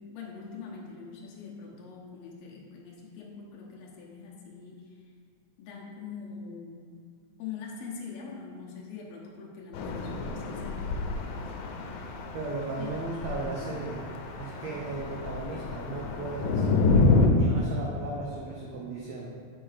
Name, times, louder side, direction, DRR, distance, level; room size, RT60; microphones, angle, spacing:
voice 1, 0.0-5.0 5.6-6.8 7.4-11.7 12.8-13.1, left 5 dB, 70° left, -4 dB, 1.7 m, -43 dB
sound 1, 9.7-17.3, left 3 dB, 85° left, 2.2 m, -28 dB
voice 2, 12.1-14.1 14.4-16.9 17.3-19.3, right 3 dB, 85° right, -4 dB, 1.5 m, -36 dB
7.4 x 4.5 x 3.3 m, 2.2 s
omnidirectional pair, 3.9 m